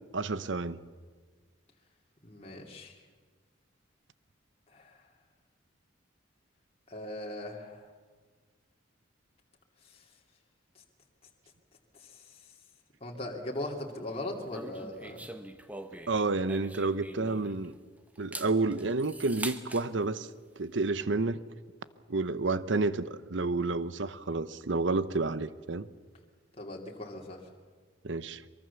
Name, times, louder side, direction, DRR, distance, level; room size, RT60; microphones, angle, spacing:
voice 1, 0.1-0.8 16.1-17.7 18.2-20.3 20.6-21.4 22.1-25.9 28.0-28.4, right 3 dB, 70° right, 0.8 m, -30 dB
voice 2, 2.2-3.0 4.7-5.1 6.9-7.9 9.8-10.1 10.7-10.8 11.9-12.5 13.0-15.3 26.6-27.5, left 1 dB, 30° left, 2.6 m, -40 dB
sound 1, 14.5-17.7 18.1-19.9, right 1 dB, 5° right, 1.1 m, -42 dB
23.5 x 23.5 x 7.0 m
head